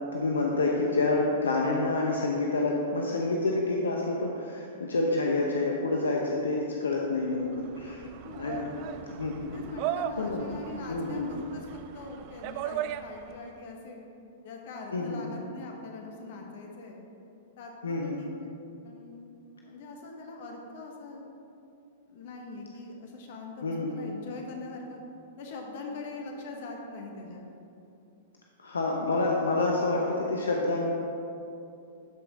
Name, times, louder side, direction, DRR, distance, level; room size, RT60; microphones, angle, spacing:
voice 1, 0.1-7.5 7.8-8.1 8.4-8.7 9.1-9.6 10.2-10.4 10.9-11.3 14.9-15.2 17.8-18.2 23.6-23.9 28.6-30.9, left 2 dB, 85° left, -1 dB, 0.8 m, -28 dB
sound 1, 7.1-13.5, right 10 dB, 45° right, 0.3 m, -38 dB
voice 2, 8.2-8.7 9.5-14.0 14.4-17.0 17.6-18.5 18.8-19.3 19.6-21.3 22.1-25.0 25.4-27.5, left 3 dB, 60° left, 1 dB, 1.4 m, -42 dB
12.0 x 5.2 x 3.7 m, 2.7 s
hypercardioid pair, 110°, 0 cm